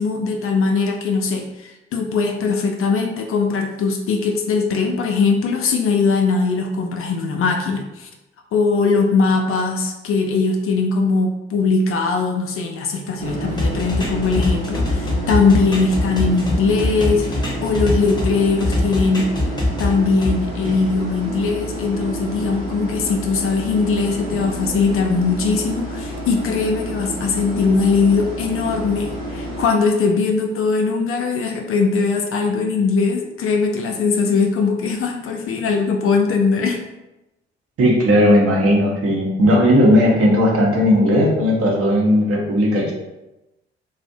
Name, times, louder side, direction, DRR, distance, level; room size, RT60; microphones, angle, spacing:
voice 1, 0.0-8.1 8.5-19.5 19.8-36.8, left 4 dB, 45° left, 3 dB, 0.4 m, -20 dB
sound 1, 13.2-29.6, equal, 85° right, 0.8 m, -29 dB
sound 2, 13.6-18.3 18.6-20.3, left 1 dB, 15° left, 0.8 m, -22 dB
voice 2, 37.8-42.9, equal, 45° right, -1 dB, 0.8 m, -16 dB
2.4 x 2.0 x 2.6 m, 0.96 s
figure-of-eight pair, 40°, 31 cm